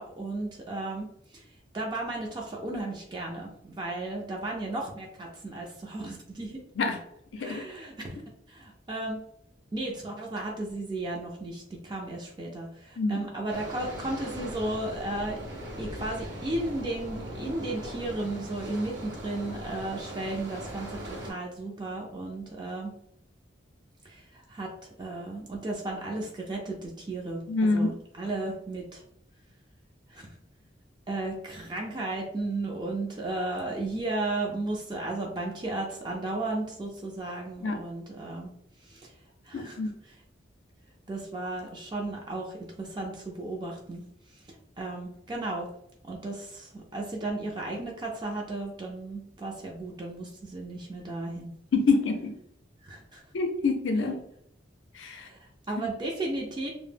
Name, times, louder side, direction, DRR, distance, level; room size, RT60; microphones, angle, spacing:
voice 1, 0.0-1.5 1.7-6.6 7.4-8.2 8.5-9.2 9.7-15.4 15.8-22.9 24.0-24.7 25.0-27.4 27.7-29.0 30.1-30.4 31.1-38.5 38.8-39.2 39.4-40.2 41.1-44.0 44.3-44.4 44.8-45.7 46.1-51.5 52.8-53.2 55.1-56.7, right 2 dB, 25° right, -1 dB, 0.3 m, -34 dB
voice 2, 7.3-7.6 13.0-13.2 27.5-27.9 37.6-37.8 39.5-39.9 51.7-52.3 53.3-54.2 55.0-55.3, left 3 dB, 85° left, 4 dB, 0.5 m, -26 dB
sound 1, 13.5-21.3, equal, 75° right, 0.7 m, -40 dB
2.0 x 2.0 x 3.2 m, 0.73 s
head